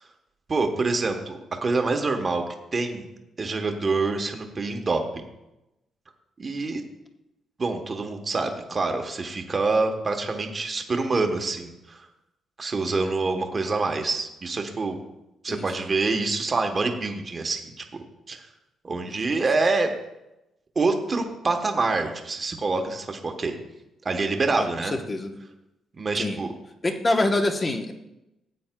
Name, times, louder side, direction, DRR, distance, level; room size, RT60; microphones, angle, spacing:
voice 1, 0.5-2.4 2.7-3.1 3.4-5.0 6.4-6.8 7.6-12.0 12.6-15.0 15.4-18.4 18.8-19.9 20.7-23.5 24.0-25.0 26.0-26.5, right 3 dB, 25° right, 4 dB, 1.0 m, -26 dB
voice 2, 19.0-19.4 24.5-25.3 26.2-26.4 26.8-27.9, left 2 dB, 20° left, 5 dB, 0.8 m, -26 dB
15.0 x 8.5 x 2.2 m, 0.93 s
cardioid pair, 155°, 0 cm